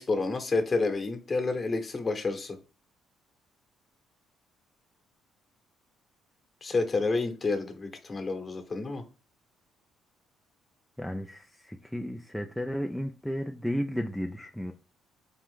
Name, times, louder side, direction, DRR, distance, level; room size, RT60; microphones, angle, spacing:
voice 1, 0.0-2.6 6.6-9.0, left 3 dB, 35° left, 1.1 m, -29 dB
voice 2, 11.0-14.7, equal, 5° left, 0.4 m, -33 dB
4.4 x 2.5 x 3.5 m
cardioid pair, 80°, 0 cm